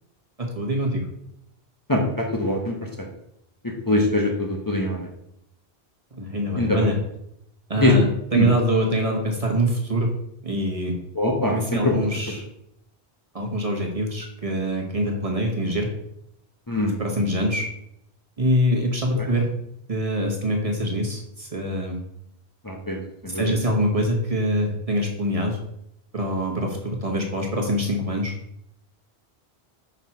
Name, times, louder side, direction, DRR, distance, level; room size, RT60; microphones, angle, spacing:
voice 1, 0.4-1.1 6.2-7.0 7.7-10.1 10.4-11.0 11.5-12.4 13.3-15.9 17.0-17.6 18.4-19.5 19.9-22.0 23.3-25.6 26.1-28.3, equal, 35° right, 0 dB, 1.4 m, -24 dB
voice 2, 1.9-3.1 3.6-5.1 6.6-6.9 7.8-7.9 8.3-8.5 11.1-12.0 16.7-16.9 19.2-19.3 22.6-23.5, left 1 dB, 20° left, -1 dB, 1.0 m, -23 dB
5.8 x 4.5 x 5.7 m, 0.77 s
omnidirectional pair, 1.1 m